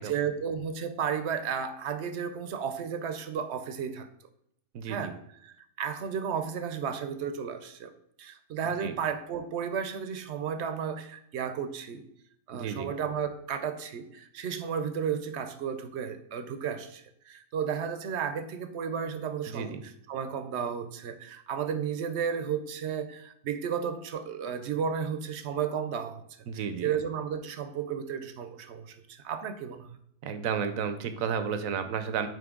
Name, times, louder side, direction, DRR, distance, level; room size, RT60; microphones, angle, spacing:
voice 1, 0.0-4.1 4.9-5.2 5.4-7.9 8.2-12.0 12.5-26.2 26.8-30.0, right 7 dB, 65° right, 10 dB, 0.8 m, -33 dB
voice 2, 4.7-5.1 8.8-9.0 12.5-12.9 19.5-19.8 26.5-26.9 30.2-32.3, right 7 dB, 85° right, 9 dB, 1.1 m, -32 dB
9.0 x 3.0 x 3.6 m, 0.72 s
omnidirectional pair, 1.4 m